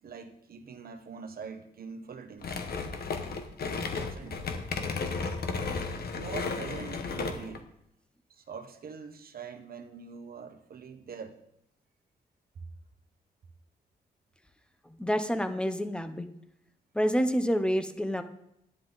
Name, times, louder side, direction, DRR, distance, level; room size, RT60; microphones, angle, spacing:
voice 1, 0.0-2.7 3.5-4.4 6.2-7.6 8.3-11.4, right 6 dB, 60° right, 6 dB, 1.2 m, -44 dB
sound 1, 2.4-7.6, left 4 dB, 65° left, 1.2 m, -34 dB
voice 2, 14.9-16.3 16.9-18.2, equal, 5° left, 9 dB, 0.9 m, -28 dB
10.0 x 10.0 x 4.1 m, 0.79 s
cardioid pair, 85°, 17 cm